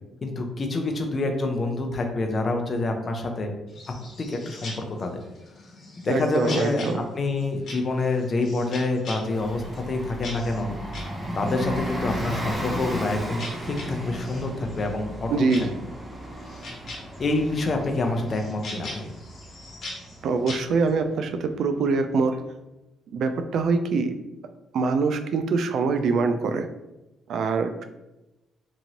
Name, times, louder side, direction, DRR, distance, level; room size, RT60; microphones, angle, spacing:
voice 1, 0.2-3.5 4.2-5.2 6.0-6.9 7.1-10.7 11.3-15.7 17.2-19.1, left 2 dB, 40° left, 4 dB, 0.5 m, -27 dB
sound 1, 3.7-20.9, left 2 dB, 65° left, 1.1 m, -42 dB
voice 2, 6.1-7.1 15.3-15.8 20.2-22.4 23.1-24.2 24.7-26.7 27.3-27.8, right 4 dB, 70° right, 8 dB, 0.3 m, -24 dB
Bus, 9.2-21.5, equal, 25° right, 0.7 m, -35 dB
3.0 x 2.5 x 2.8 m, 0.98 s
cardioid pair, 90°, 0 cm